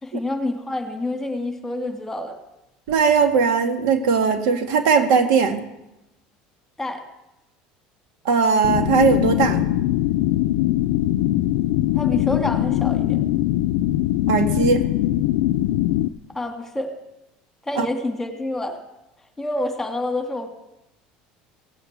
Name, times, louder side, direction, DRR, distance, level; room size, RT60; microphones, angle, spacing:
voice 1, 0.0-2.4 6.8-7.0 11.9-13.2 16.3-17.0 17.7-18.8 19.4-20.5, left 1 dB, 10° left, 4 dB, 2.0 m, -27 dB
voice 2, 2.9-5.6 8.3-9.7 14.3-14.9 17.8-17.9, right 5 dB, 80° right, 6 dB, 2.0 m, -19 dB
sound 1, 8.6-16.1, left 14 dB, 90° left, 0.5 m, -21 dB
17.0 x 9.0 x 8.1 m, 0.92 s
cardioid pair, 135°, 3 cm